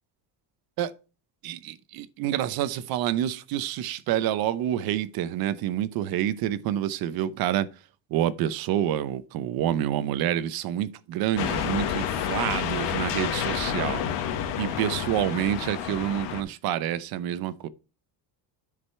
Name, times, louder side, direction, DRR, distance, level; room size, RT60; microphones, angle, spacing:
voice 1, 1.4-7.7 8.1-14.0 14.6-17.7, right 11 dB, 60° right, 0.8 m, -28 dB
sound 1, 11.4-16.4, left 8 dB, 80° left, 1.8 m, -29 dB
9.9 x 5.2 x 4.3 m
cardioid pair, 165°, 42 cm